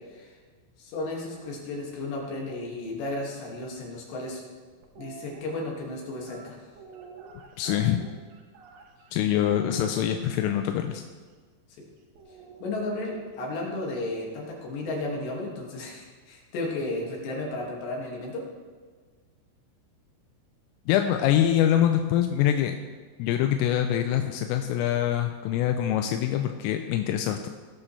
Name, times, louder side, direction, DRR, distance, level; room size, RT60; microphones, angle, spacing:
voice 1, 0.8-4.4 5.0-6.6 12.6-18.4, left 2 dB, 65° left, -2 dB, 4.1 m, -33 dB
sound 1, 4.8-5.4 6.2-9.1 9.4-11.0 12.1-13.5, right 7 dB, 90° right, 2.0 m, -47 dB
voice 2, 7.6-8.0 9.1-11.0 20.9-22.8 23.2-27.5, left 11 dB, 85° left, 5 dB, 3.2 m, -24 dB
17.5 x 8.7 x 3.3 m, 1.5 s
omnidirectional pair, 5.8 m